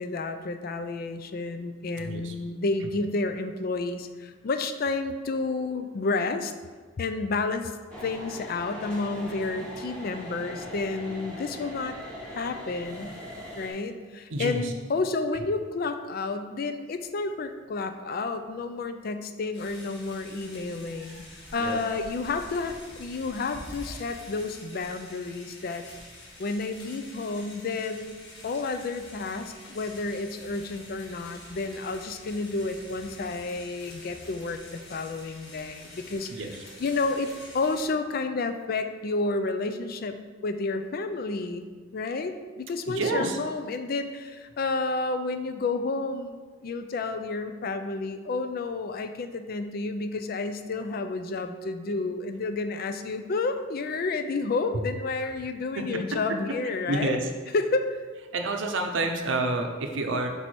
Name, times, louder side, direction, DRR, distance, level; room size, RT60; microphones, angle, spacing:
voice 1, 0.0-6.5 7.0-7.7 8.0-12.0 12.3-13.1 13.6-21.2 21.5-25.8 26.4-28.1 28.4-40.2 40.4-41.7 41.9-57.2 57.5-58.0, left 3 dB, 50° left, 8 dB, 0.4 m, -30 dB
voice 2, 2.0-2.3 14.3-14.7 21.1-21.2 21.5-21.8 36.3-36.5 42.9-43.4 55.8-55.9 56.9-57.2 58.3-60.3, right 2 dB, 70° right, 4 dB, 0.7 m, -28 dB
sound 1, 7.9-13.7, equal, 5° left, 1.1 m, -41 dB
sound 2, 19.5-37.8, left 1 dB, 80° left, 1.6 m, -47 dB
5.4 x 4.5 x 4.2 m, 1.5 s
head